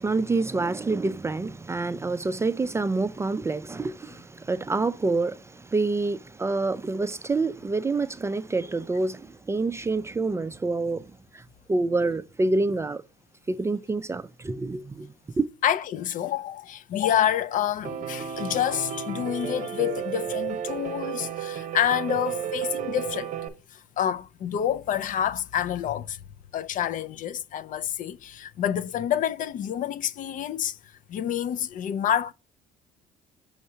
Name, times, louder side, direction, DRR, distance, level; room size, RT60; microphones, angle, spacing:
voice 1, 0.0-13.0 13.5-15.5, right 3 dB, 15° right, 0.3 m, -27 dB
voice 2, 15.6-23.4 23.7-26.2 26.5-30.8 31.1-32.3, left 10 dB, 50° left, 0.4 m, -28 dB
Piano, 17.8-23.5, right 9 dB, 50° right, 0.8 m, -32 dB
6.4 x 2.7 x 5.5 m
cardioid pair, 110°, 17 cm